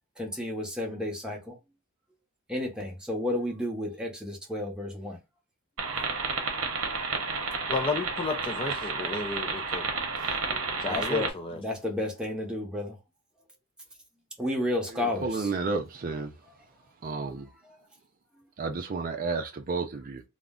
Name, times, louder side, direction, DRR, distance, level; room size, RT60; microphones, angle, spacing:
voice 1, 0.2-1.6 2.5-5.2 10.5-12.9 14.4-15.3, left 1 dB, 5° right, 0.8 m, -32 dB
sound 1, 5.8-11.3, right 4 dB, 70° right, 0.8 m, -31 dB
voice 2, 7.7-9.9 10.8-11.6, left 3 dB, 25° left, 0.4 m, -32 dB
voice 3, 14.9-16.3 17.0-17.5 18.6-20.2, right 4 dB, 40° right, 0.4 m, -32 dB
2.4 x 2.1 x 3.6 m
head